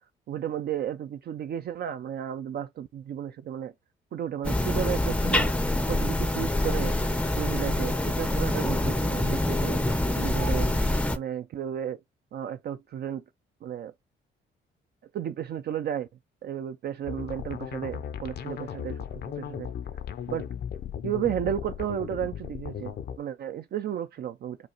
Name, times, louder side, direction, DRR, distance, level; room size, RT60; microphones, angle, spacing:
voice 1, 0.3-3.7 4.1-5.5 5.9-6.9 7.4-9.8 10.1-10.7 11.1-12.0 12.3-13.2 13.6-13.9 15.1-16.1 16.4-19.0 19.4-19.7 20.3-20.4 21.0-24.6, right 10 dB, 55° right, 0.4 m, -33 dB
sound 1, 4.4-11.2, left 1 dB, 5° left, 0.5 m, -26 dB
sound 2, 17.0-23.2, left 8 dB, 55° left, 0.6 m, -36 dB
5.1 x 2.3 x 2.9 m
cardioid pair, 90°, 20 cm